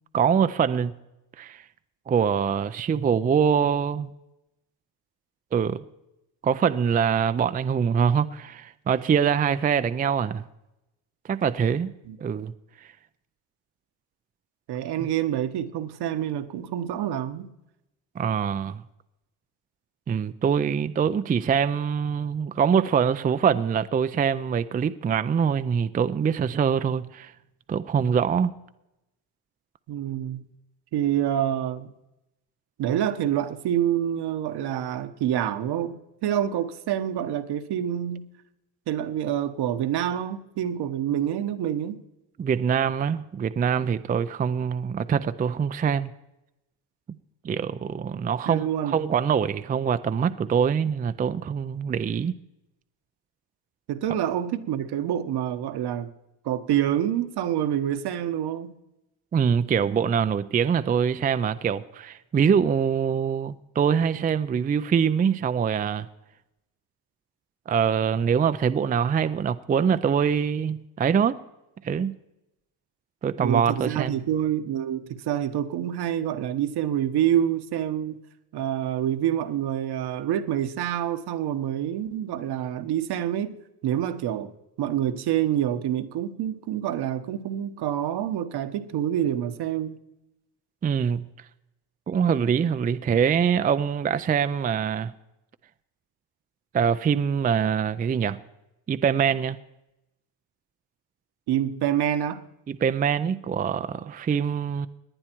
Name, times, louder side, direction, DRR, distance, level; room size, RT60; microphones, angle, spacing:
voice 1, 0.1-0.9 1.4-1.6 2.1-4.1 5.5-5.8 6.4-10.4 11.3-11.9 12.2-12.5 12.8-12.9 15.0-15.1 18.2-18.8 20.1-27.3 27.7-28.5 42.4-46.1 47.4-52.3 59.3-66.1 67.7-71.4 71.8-72.1 73.2-74.2 90.8-91.3 92.1-95.1 96.7-98.4 98.9-99.6 102.7-104.9, right 7 dB, 20° right, 0.4 m, -24 dB
voice 2, 14.7-17.5 29.9-30.4 30.9-31.9 32.8-38.3 38.9-42.0 48.2-49.0 53.9-56.1 56.4-58.7 73.4-78.2 78.5-83.6 83.8-84.5 84.8-90.0 101.5-102.4, right 10 dB, 65° right, 1.2 m, -27 dB
18.5 x 10.5 x 4.5 m
cardioid pair, 115°, 41 cm